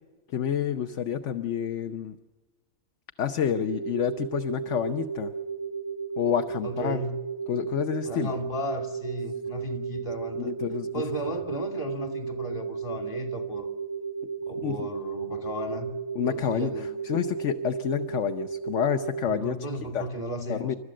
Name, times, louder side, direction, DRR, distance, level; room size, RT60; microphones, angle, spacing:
voice 1, 0.3-2.2 3.2-5.3 6.2-7.0 7.5-8.3 10.3-11.0 14.6-14.9 16.1-16.7 17.0-19.6 19.9-20.0 20.5-20.7, left 8 dB, 60° left, 7 dB, 1.1 m, -28 dB
sound 1, 3.6-19.4, right 6 dB, 85° left, 3.0 m, -34 dB
voice 2, 6.6-7.2 8.0-10.6 10.9-13.7 14.5-15.9 16.2-16.9 19.3-20.8, equal, 35° left, 5 dB, 2.9 m, -35 dB
29.5 x 13.0 x 7.6 m, 1.3 s
omnidirectional pair, 1.5 m